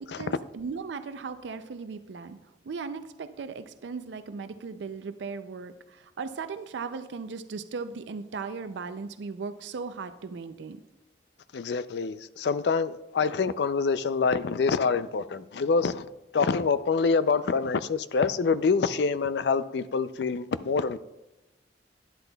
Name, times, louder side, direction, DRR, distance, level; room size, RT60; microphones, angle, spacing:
voice 1, 0.2-2.4 2.6-10.8, right 5 dB, 80° right, 0.4 m, -37 dB
voice 2, 11.5-16.1 16.3-21.0, left 5 dB, 65° left, 0.4 m, -26 dB
12.0 x 10.5 x 2.3 m
head